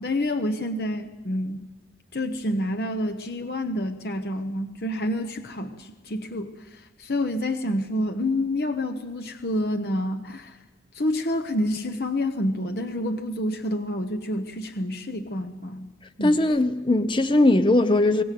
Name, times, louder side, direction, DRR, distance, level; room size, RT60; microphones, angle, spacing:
voice 1, 0.0-1.6 2.1-6.5 7.0-10.6 10.9-15.9 16.2-16.4, left 1 dB, 60° left, 1.0 m, -28 dB
voice 2, 16.2-18.2, left 2 dB, 25° left, 0.8 m, -19 dB
23.5 x 18.5 x 7.7 m
head